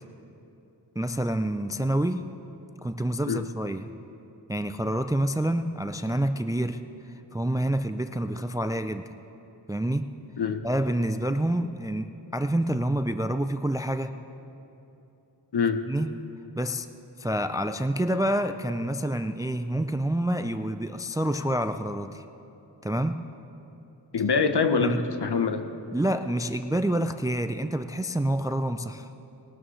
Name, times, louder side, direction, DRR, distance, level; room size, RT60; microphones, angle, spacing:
voice 1, 1.0-2.3 2.8-3.9 4.5-6.8 7.3-9.0 9.7-10.1 10.6-14.1 15.9-16.1 16.6-16.9 17.2-22.2 22.8-23.2 24.8-25.0 25.9-29.1, right 1 dB, 10° right, 9 dB, 0.3 m, -27 dB
voice 2, 15.5-15.8 24.1-25.6, left 5 dB, 65° left, 8 dB, 0.9 m, -24 dB
20.0 x 12.5 x 3.2 m, 2.9 s
wide cardioid pair, 65°, 44 cm